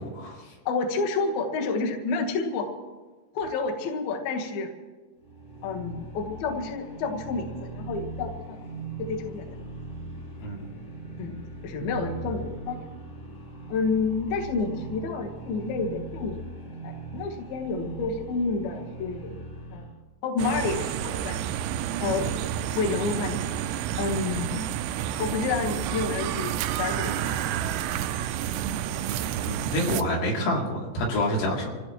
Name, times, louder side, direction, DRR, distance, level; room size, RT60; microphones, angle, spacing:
voice 1, 0.0-0.5 10.4-10.7 22.2-22.5 29.4-31.8, left 1 dB, 80° left, -3 dB, 5.4 m, -28 dB
voice 2, 0.7-2.7 3.3-4.7 5.6-8.6 9.0-9.7 11.2-11.4 11.6-12.9 13.7-16.4 16.8-19.3 19.7-19.9 20.2-21.4 22.0-22.3 22.7-23.6 24.0-24.7 25.2-27.6, left 4 dB, 65° left, 2 dB, 2.8 m, -29 dB
sound 1, 5.2-20.0, right 3 dB, 35° left, 1.7 m, -40 dB
sound 2, 20.4-30.0, right 11 dB, 90° right, 2.4 m, -30 dB
26.0 x 16.0 x 3.1 m, 1.3 s
omnidirectional pair, 5.4 m